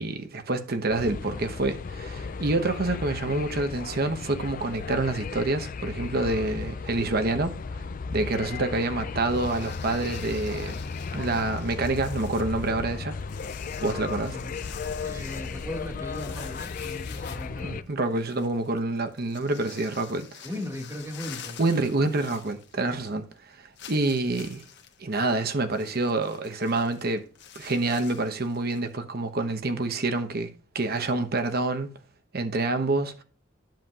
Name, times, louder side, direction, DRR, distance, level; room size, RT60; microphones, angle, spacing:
voice 1, 0.0-7.5 8.1-10.9 11.1-13.2 13.8-14.4 17.6-20.4 21.6-23.3 23.9-24.6 25.0-27.2 27.5-32.0 32.3-33.2, right 2 dB, 55° right, 1.0 m, -27 dB
sound 1, 0.9-17.8, left 5 dB, 45° left, 0.4 m, -35 dB
sound 2, 9.3-23.1 23.3-23.4 23.8-28.9, left 8 dB, 60° left, 1.1 m, -47 dB
voice 2, 14.3-14.6 15.0-17.9 20.4-21.6 22.7-22.8, left 1 dB, 15° right, 1.9 m, -38 dB
10.5 x 7.2 x 2.4 m
head